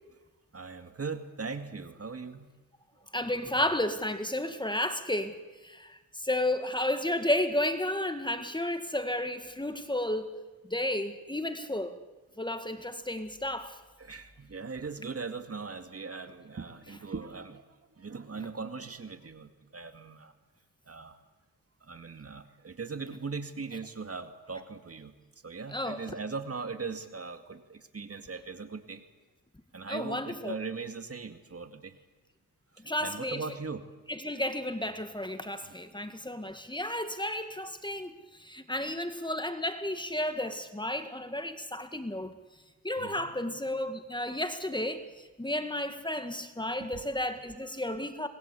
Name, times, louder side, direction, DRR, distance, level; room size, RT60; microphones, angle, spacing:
voice 1, 0.5-2.5 14.0-17.6 18.0-20.3 20.9-21.2 21.8-25.1 25.4-29.0 29.7-32.0 32.7-33.8 35.7-35.8 36.1-36.2 43.0-43.3 46.8-47.0, right 4 dB, 40° right, 8 dB, 2.3 m, -39 dB
voice 2, 3.1-10.4 10.7-11.9 12.4-13.8 25.7-26.0 29.9-30.6 32.8-33.4 34.1-42.3 42.8-48.3, left 1 dB, 10° left, 9 dB, 1.9 m, -32 dB
26.0 x 20.0 x 8.5 m, 1.2 s
cardioid pair, 70°, 37 cm